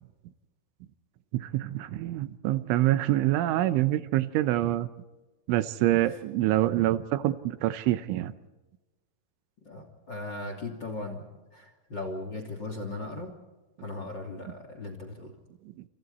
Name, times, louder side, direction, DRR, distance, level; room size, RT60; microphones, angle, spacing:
voice 1, 1.3-4.9 5.5-8.3 15.8-15.9, right 15 dB, 80° right, 12 dB, 3.2 m, -26 dB
voice 2, 9.6-11.3 11.5-13.3 13.8-15.3, left 2 dB, 30° left, 5 dB, 2.5 m, -37 dB
28.5 x 28.5 x 4.2 m, 1.1 s
omnidirectional pair, 5.6 m